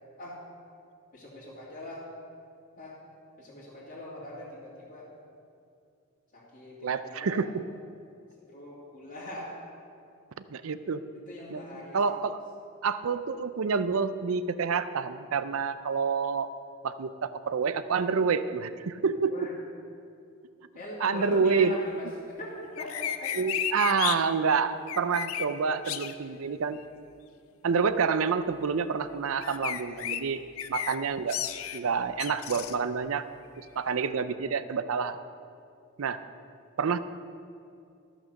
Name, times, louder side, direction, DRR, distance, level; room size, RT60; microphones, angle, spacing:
voice 1, 1.1-2.0 2.8-3.0 3.4-5.1 6.3-7.4 8.5-9.6 11.3-12.0 19.3-19.5 20.8-22.1 22.3-23.3, left 1 dB, 40° left, -9 dB, 2.1 m, -41 dB
voice 2, 6.8-7.5 10.5-11.0 11.5-12.4 12.8-16.5 16.8-19.3 21.0-21.7 23.3-26.8 27.6-30.4 30.7-31.4 31.7-33.2 33.6-35.2 36.0-36.2 36.8-37.0, right 5 dB, 75° right, 12 dB, 0.5 m, -28 dB
sound 1, 22.8-24.1 24.9-25.5 25.8-26.1 29.4-30.2 30.6-30.9 31.3-31.8 32.2-32.7, left 10 dB, 80° left, 0.5 m, -32 dB
13.5 x 6.1 x 6.4 m, 2.5 s
head